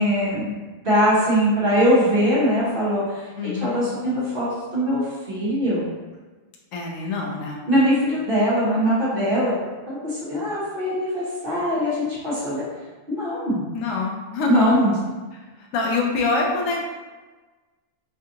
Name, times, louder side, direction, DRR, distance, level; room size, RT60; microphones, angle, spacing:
voice 1, 0.0-5.8 7.7-9.5 9.9-12.6 13.1-13.6 14.5-14.9, equal, 45° right, -9 dB, 1.3 m, -22 dB
voice 2, 3.4-3.8 6.7-7.6 13.7-14.8 15.6-16.8, left 3 dB, 85° left, 0 dB, 1.0 m, -25 dB
3.7 x 2.5 x 2.7 m, 1.3 s
omnidirectional pair, 1.3 m